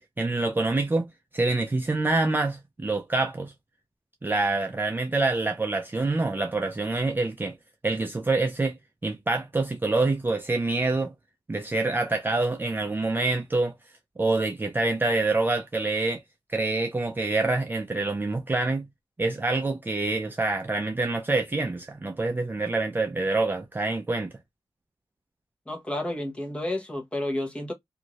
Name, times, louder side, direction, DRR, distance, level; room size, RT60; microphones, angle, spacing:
voice 1, 0.0-3.5 4.2-7.6 7.8-8.8 9.0-11.1 11.5-13.7 14.2-16.2 16.5-18.9 19.2-24.3, right 2 dB, 20° right, 0.4 m, -26 dB
voice 2, 25.7-27.7, left 1 dB, 10° left, 0.9 m, -31 dB
2.6 x 2.4 x 3.0 m
wide cardioid pair, 110°, 9 cm